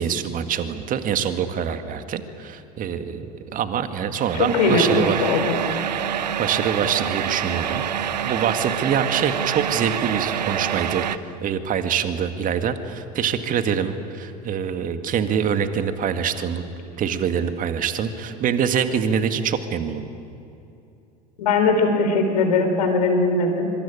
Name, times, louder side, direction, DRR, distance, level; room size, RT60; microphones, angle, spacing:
voice 1, 0.0-5.2 6.4-7.8 8.2-11.0 11.4-16.6 17.0-20.0, right 7 dB, 40° right, 8 dB, 2.1 m, -25 dB
sound 1, 4.2-11.2, right 9 dB, 80° right, 0.9 m, -26 dB
voice 2, 4.3-5.6 21.4-23.7, left 3 dB, 75° left, 5 dB, 4.6 m, -20 dB
25.5 x 24.5 x 9.0 m, 2.8 s
figure-of-eight pair, 75°, 21 cm